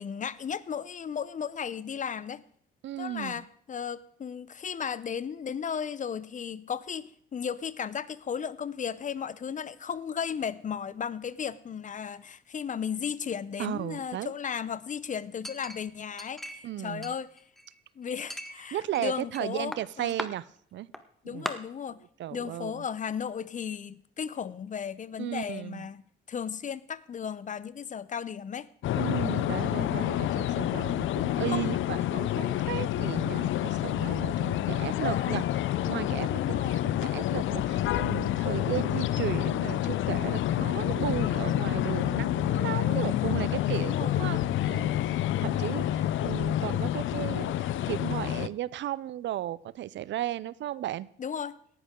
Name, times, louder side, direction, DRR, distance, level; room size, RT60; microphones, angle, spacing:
voice 1, 0.0-2.4 3.0-17.3 18.0-20.1 21.2-22.0 22.3-26.0 26.3-28.7 31.5-31.6 35.1-35.6 36.3-36.9 43.7-44.9 45.3-45.7 51.2-51.6, left 7 dB, 40° left, 18 dB, 0.7 m, -35 dB
voice 2, 2.8-3.5 13.6-14.3 16.6-17.1 18.7-20.9 21.2-21.5 22.2-22.8 25.2-25.9 29.0-44.9 45.4-51.1, right 13 dB, 65° right, 20 dB, 0.5 m, -35 dB
Chink clink, 15.4-16.7 17.0-17.8 18.3-19.4 19.7-20.3 20.9-21.0 21.5-21.6, equal, ahead, 1.1 m, -39 dB
sound 1, 28.8-48.5, left 13 dB, 80° left, 0.6 m, -28 dB
18.0 x 11.0 x 3.7 m, 0.64 s
cardioid pair, 90°, 20 cm